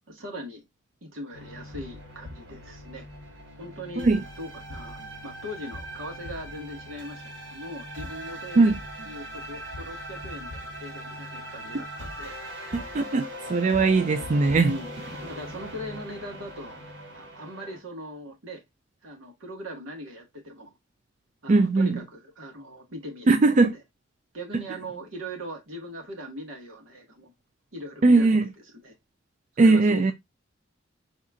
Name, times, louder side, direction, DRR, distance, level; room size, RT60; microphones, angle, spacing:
voice 1, 0.1-0.6 1.0-3.1 3.6-4.1 4.4-7.2 7.5-8.7 9.0-12.4 12.8-12.9 14.5-15.0 15.2-16.8 17.1-18.6 19.0-20.7 21.4-23.8 24.3-27.3 27.7-28.3 28.8-28.9 29.6-30.1, equal, 85° right, 1.6 m, -40 dB
sound 1, 1.3-17.8, equal, 65° right, 1.8 m, -40 dB
voice 2, 12.7-14.7 21.5-22.0 23.3-23.7 28.0-28.4 29.6-30.1, right 3 dB, 40° right, 0.4 m, -19 dB
4.2 x 2.9 x 3.5 m
head